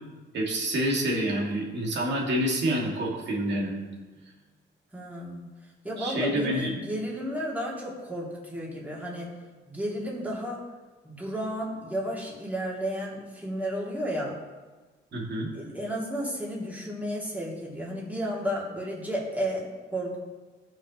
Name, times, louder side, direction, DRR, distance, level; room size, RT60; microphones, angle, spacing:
voice 1, 0.3-3.8 6.0-6.7 15.1-15.5, right 1 dB, 60° right, -2 dB, 2.4 m, -27 dB
voice 2, 4.9-5.4 5.8-9.3 9.7-10.6 11.0-14.4 15.5-20.2, equal, 10° right, -5 dB, 2.9 m, -32 dB
15.5 x 5.9 x 3.2 m, 1.3 s
cardioid pair, 90°, 20 cm